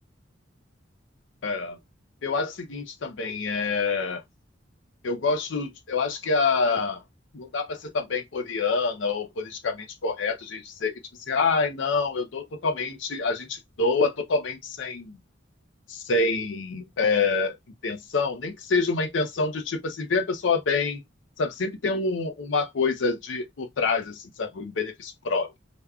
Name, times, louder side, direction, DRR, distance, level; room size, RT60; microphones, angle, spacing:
voice 1, 1.4-1.8 2.2-4.2 5.0-7.0 7.3-10.9 11.3-15.2 15.9-17.5 17.8-21.0 21.4-25.5, left 4 dB, 80° left, 0.6 m, -26 dB
5.0 x 2.3 x 2.3 m
head